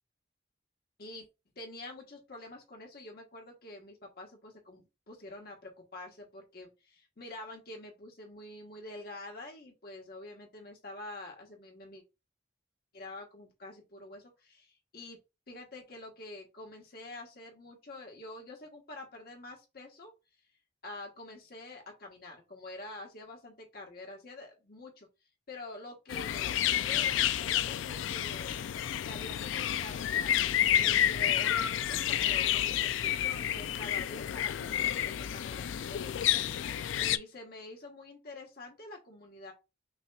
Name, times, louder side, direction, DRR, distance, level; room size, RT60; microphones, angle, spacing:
voice 1, 1.5-12.0 12.9-15.2 15.5-20.1 20.8-25.1 25.5-28.6 29.0-39.5, left 2 dB, 55° left, 1.3 m, -47 dB
sound 1, 26.1-37.2, left 11 dB, 90° left, 0.3 m, -30 dB
6.0 x 2.9 x 2.3 m
head